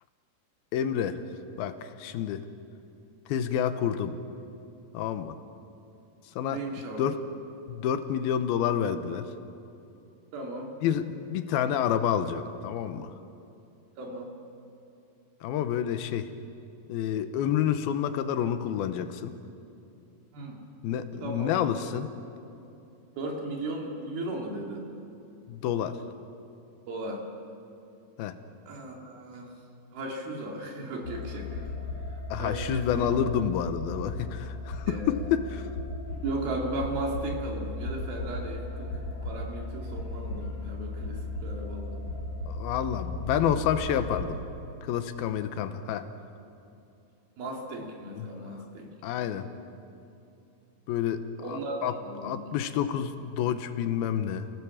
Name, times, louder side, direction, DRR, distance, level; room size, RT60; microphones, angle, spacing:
voice 1, 0.7-1.2 1.6-1.7 2.0-2.4 3.3-4.2 4.9-5.3 6.4-6.6 7.0-7.2 7.7-9.3 10.8-13.1 15.4-16.3 16.9-19.4 20.8-22.1 25.5-26.0 28.2-28.4 32.3-35.6 42.5-44.4 44.8-46.1 48.2-48.3 49.0-49.5 50.9-51.2 51.5-51.9 52.2-54.5, left 9 dB, 85° left, 9 dB, 2.9 m, -28 dB
voice 2, 6.5-7.1 10.3-10.7 14.0-14.3 20.3-20.6 21.2-21.5 23.1-24.9 26.9-27.2 28.7-29.6 29.9-31.7 32.4-33.1 34.9-35.1 36.2-42.1 47.4-48.9 51.4-52.5, right 2 dB, 80° right, 0 dB, 4.6 m, -36 dB
sound 1, 31.0-44.2, left 2 dB, 50° left, 4.2 m, -36 dB
28.0 x 17.5 x 7.3 m, 2.7 s
omnidirectional pair, 4.3 m